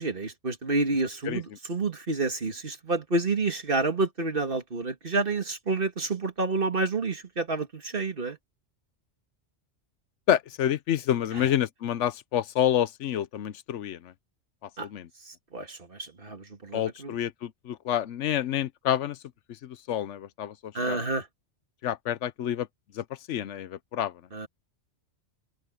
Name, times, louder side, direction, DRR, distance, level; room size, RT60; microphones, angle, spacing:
voice 1, 0.0-8.4 11.3-11.5 14.8-14.9 15.3-17.2 20.7-21.3 24.3-24.5, right 3 dB, 50° right, 2.3 m, -29 dB
voice 2, 10.3-14.1 14.8-15.1 16.7-19.2 19.6-21.0 21.8-22.7 22.9-24.1, left 11 dB, 90° left, 1.0 m, -28 dB
open air
omnidirectional pair, 1.2 m